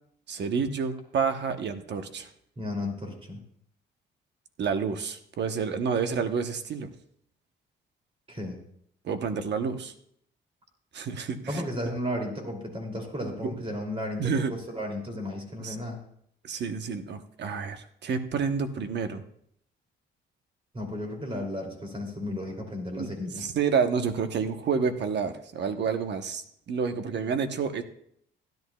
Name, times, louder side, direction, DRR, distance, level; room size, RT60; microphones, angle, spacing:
voice 1, 0.3-2.3 4.6-6.9 9.0-9.9 10.9-11.6 14.2-14.5 15.6-15.8 16.4-19.2 23.0-27.8, right 6 dB, 60° right, 8 dB, 1.0 m, -29 dB
voice 2, 2.6-3.4 8.3-8.6 11.5-16.0 20.7-23.5, left 1 dB, 30° right, 2 dB, 2.8 m, -34 dB
16.0 x 10.5 x 2.3 m, 0.69 s
cardioid pair, 90°, 20 cm